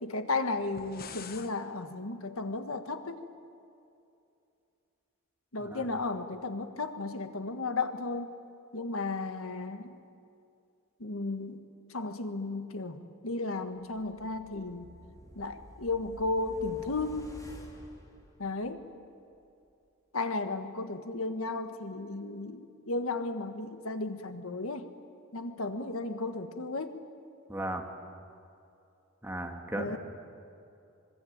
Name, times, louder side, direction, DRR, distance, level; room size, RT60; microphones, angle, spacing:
voice 1, 0.0-3.3 5.5-8.3 8.7-10.0 11.0-11.6 11.9-14.9 15.3-17.3 18.4-18.9 20.1-24.9 25.3-27.0 29.8-30.0, left 3 dB, 85° left, 8 dB, 1.6 m, -34 dB
sound 1, 0.6-1.5, left 6 dB, 45° left, 1.3 m, -45 dB
sound 2, 13.8-19.0 19.3-19.4, equal, 15° left, 3.2 m, -51 dB
voice 2, 27.5-27.8 29.2-30.0, right 1 dB, 10° right, 2 dB, 2.3 m, -36 dB
25.5 x 22.5 x 8.9 m, 2.6 s
head